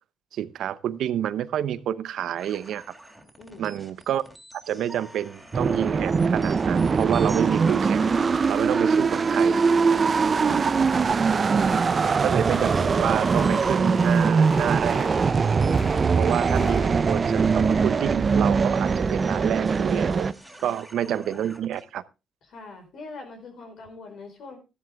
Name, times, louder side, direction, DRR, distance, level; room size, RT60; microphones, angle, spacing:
voice 1, 0.3-2.8 3.6-4.2 4.5-8.1 8.5-9.7 10.5-10.6 11.6-11.8 12.0-15.1 16.2-20.3 20.6-22.0, right 10 dB, 75° right, 0.7 m, -28 dB
sound 1, 2.4-21.8, right 1 dB, ahead, 3.3 m, -48 dB
voice 2, 3.4-3.7 10.3-12.2 20.6-20.8 22.5-24.6, left 3 dB, 65° left, 4.7 m, -43 dB
sound 2, 5.5-20.3, right 5 dB, 40° right, 0.6 m, -22 dB
sound 3, 7.3-16.9, left 4 dB, 35° left, 1.4 m, -45 dB
13.5 x 11.0 x 3.4 m
cardioid pair, 90°, 0 cm